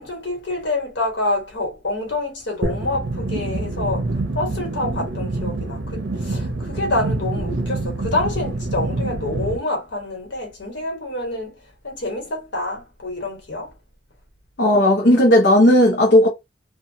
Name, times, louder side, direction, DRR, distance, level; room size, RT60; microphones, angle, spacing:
voice 1, 0.0-11.6 11.8-13.7, left 2 dB, 90° left, 1.2 m, -27 dB
sound 1, 2.6-9.6, right 2 dB, 80° right, 0.6 m, -26 dB
voice 2, 14.6-16.3, left 1 dB, 70° left, 0.7 m, -14 dB
2.7 x 2.3 x 2.6 m
head